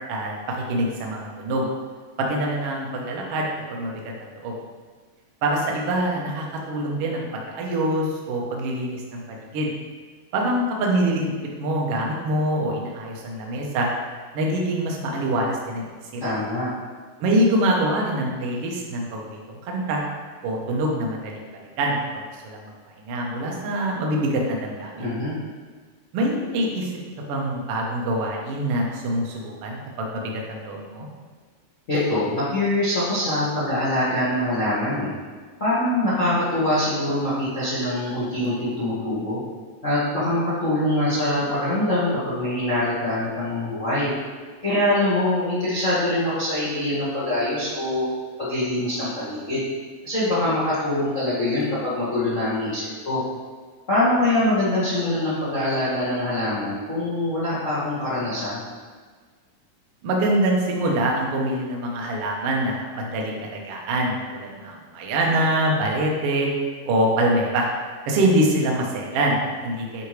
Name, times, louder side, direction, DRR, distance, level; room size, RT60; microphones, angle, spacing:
voice 1, 0.1-1.7 2.2-4.0 4.4-4.6 5.4-9.7 10.3-11.3 11.6-13.9 14.3-15.8 16.1-16.2 17.2-19.4 19.6-20.0 20.4-22.7 23.0-25.1 26.1-26.9 27.3-31.1 60.0-66.5 66.9-67.7 68.1-70.1, right 1 dB, 65° right, -1 dB, 1.5 m, -25 dB
voice 2, 16.2-16.7 25.0-25.3 31.9-35.1 35.6-39.4 39.8-44.1 44.6-48.0 48.4-49.6 50.0-53.2 53.9-58.6, left 1 dB, 35° left, -10 dB, 1.3 m, -24 dB
9.9 x 4.9 x 3.3 m, 1.5 s
omnidirectional pair, 4.0 m